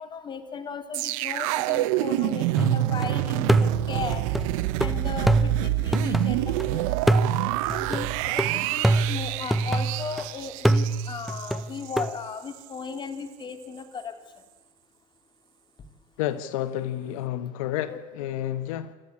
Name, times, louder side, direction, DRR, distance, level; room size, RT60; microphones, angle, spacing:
voice 1, 0.0-4.2 4.8-7.0 7.7-14.1 17.9-18.0, left 5 dB, 25° left, 2.7 m, -36 dB
sound 1, 0.9-12.1 12.5-12.6, right 16 dB, 80° right, 1.1 m, -27 dB
sound 2, 2.6-3.1 3.5-6.6 7.1-10.2 10.6-12.1, right 2 dB, ahead, 0.7 m, -25 dB
voice 2, 16.2-18.9, left 12 dB, 85° left, 1.2 m, -30 dB
27.5 x 14.5 x 9.7 m
supercardioid pair, 130°, 17 cm